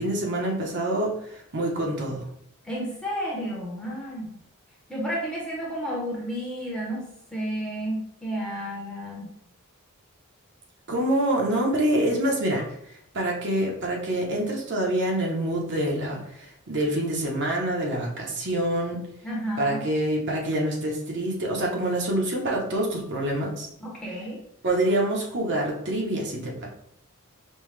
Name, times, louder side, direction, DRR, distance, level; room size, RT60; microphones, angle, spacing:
voice 1, 0.0-2.2 10.9-12.6 13.1-19.0 19.6-23.7 24.6-26.7, right 1 dB, 55° right, -1 dB, 1.0 m, -26 dB
voice 2, 2.6-4.3 4.9-9.3 19.2-19.8 23.8-24.4, equal, 5° left, -4 dB, 1.0 m, -31 dB
5.4 x 2.4 x 3.2 m, 0.73 s
head